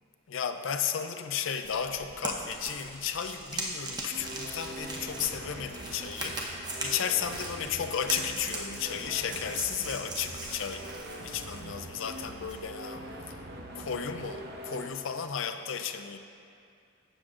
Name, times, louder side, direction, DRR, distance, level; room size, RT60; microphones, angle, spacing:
voice 1, 0.3-6.4 6.8-10.8 11.2-13.4 13.7-16.2, left 8 dB, 70° left, 7 dB, 0.5 m, -34 dB
sound 1, 1.6-12.6, right 2 dB, 20° right, 0.9 m, -40 dB
sound 2, 4.1-14.9, right 1 dB, 55° right, 0.8 m, -43 dB
12.0 x 8.0 x 2.5 m, 2.5 s
head